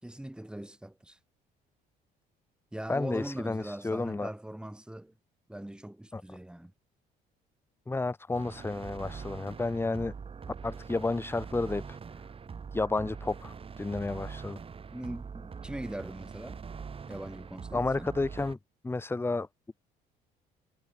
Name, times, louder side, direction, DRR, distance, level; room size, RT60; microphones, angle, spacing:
voice 1, 0.0-1.2 2.7-5.1 5.5-6.7 14.9-16.6 17.1-18.1, right 1 dB, 5° right, 4.0 m, -41 dB
voice 2, 2.9-4.3 6.1-6.4 7.9-10.1 10.6-12.0 12.7-14.6 17.7-18.6 18.8-19.5, left 3 dB, 15° left, 1.6 m, -31 dB
sound 1, 8.3-18.5, right 6 dB, 35° right, 7.3 m, -43 dB
cardioid pair, 110°, 17 cm